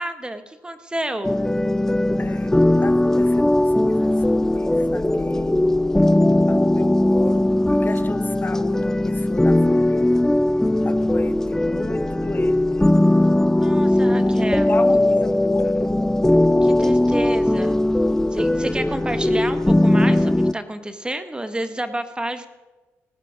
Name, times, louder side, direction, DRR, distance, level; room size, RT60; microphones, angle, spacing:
voice 1, 0.0-1.4 13.5-14.7 16.6-17.8 18.3-22.5, right 1 dB, 15° right, 9 dB, 1.1 m, -29 dB
sound 1, 1.2-20.5, left 1 dB, 10° left, 0.4 m, -19 dB
voice 2, 2.2-5.6 6.5-10.2 10.8-12.9 14.2-14.4 14.7-15.8, left 3 dB, 35° left, 11 dB, 0.9 m, -34 dB
17.5 x 7.6 x 6.2 m, 1.2 s
supercardioid pair, 60°, 6 cm